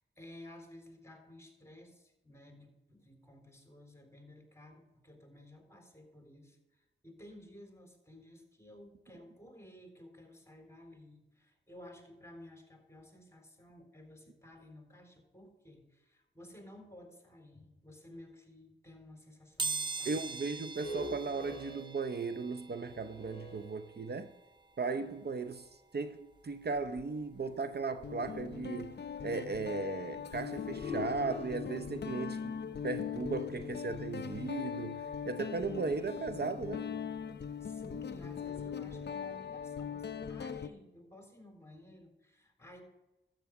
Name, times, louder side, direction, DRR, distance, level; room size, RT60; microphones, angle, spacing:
voice 1, 0.0-20.7 37.6-42.8, left 1 dB, 15° left, 3.9 m, -54 dB
sound 1, 19.6-30.3 30.7-30.8 32.0-32.1 32.4-34.5 34.8-37.4 37.8-38.0 38.3-38.4, right 3 dB, 25° right, 1.2 m, -45 dB
voice 2, 20.1-24.3 24.8-29.0 29.2-36.9, right 4 dB, 55° right, 0.7 m, -37 dB
sound 2, 20.6-24.4 25.1-25.2 30.4-34.7, left 2 dB, 30° left, 2.7 m, -46 dB
Guitar, 26.8-27.0 28.0-40.7, left 7 dB, 60° left, 0.6 m, -40 dB
12.5 x 8.9 x 4.8 m
cardioid pair, 45°, 20 cm